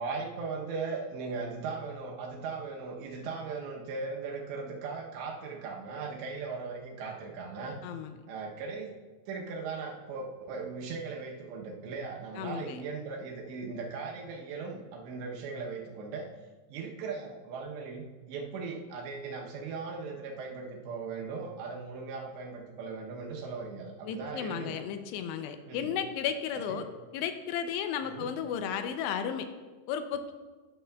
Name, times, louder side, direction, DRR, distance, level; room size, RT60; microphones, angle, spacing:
voice 1, 0.0-7.8 8.3-9.0 9.3-16.3 16.7-24.8 25.7-25.9 26.5-26.8 28.0-28.3, right 4 dB, 75° right, -1 dB, 2.9 m, -38 dB
voice 2, 7.8-8.1 12.4-12.8 24.1-26.8 27.1-29.5 29.9-30.3, left 8 dB, 80° left, 8 dB, 2.5 m, -34 dB
12.0 x 11.0 x 2.3 m, 1.3 s
omnidirectional pair, 5.4 m